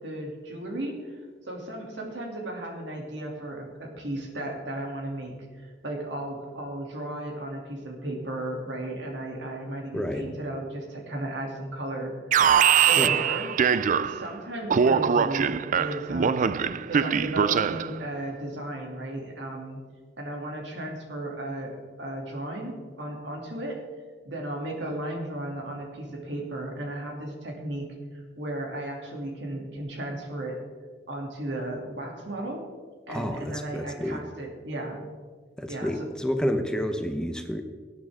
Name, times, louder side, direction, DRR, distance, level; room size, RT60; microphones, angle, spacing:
voice 1, 0.0-13.5 14.0-16.5 16.9-19.8 20.2-23.8 24.2-27.9 28.1-30.6 31.1-32.6 33.1-35.0 35.7-35.9, right 1 dB, 75° right, -1 dB, 2.7 m, -35 dB
voice 2, 9.9-10.3 13.0-13.2 33.1-34.2 35.6-37.6, equal, 5° left, 6 dB, 0.7 m, -29 dB
Alarm, 12.3-14.3 14.7-18.0, right 7 dB, 45° right, 0.4 m, -22 dB
18.5 x 8.8 x 3.6 m, 1.5 s
head